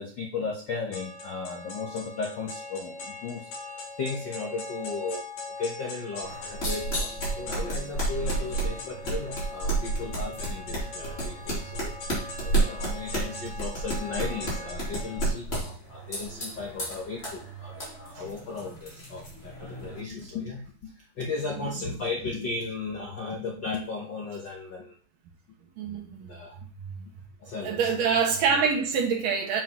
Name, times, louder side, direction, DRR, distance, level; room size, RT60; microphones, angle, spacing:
voice 1, 0.0-3.5 4.0-11.9 12.4-25.0 26.2-26.7 27.4-27.9, left 4 dB, 70° left, -1 dB, 1.0 m, -35 dB
sound 1, 0.9-15.3, left 2 dB, 85° left, 3.5 m, -40 dB
sound 2, 6.2-20.0, right 2 dB, 20° left, 3.6 m, -32 dB
voice 2, 25.8-26.3 26.8-27.1 27.6-29.6, right 6 dB, 80° right, 0 dB, 3.2 m, -26 dB
8.1 x 7.5 x 3.0 m, 0.42 s
omnidirectional pair, 3.8 m